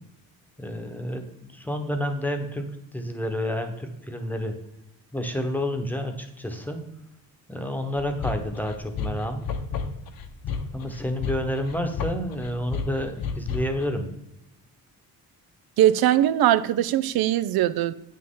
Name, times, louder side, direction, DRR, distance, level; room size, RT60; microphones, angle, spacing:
voice 1, 0.6-4.6 5.1-6.8 7.5-9.4 10.7-14.1, equal, 5° left, 1.0 m, -29 dB
sound 1, 8.0-13.8, left 5 dB, 65° left, 1.0 m, -31 dB
voice 2, 15.8-17.9, right 12 dB, 80° right, 0.6 m, -21 dB
8.7 x 6.5 x 3.7 m
cardioid pair, 110°, 37 cm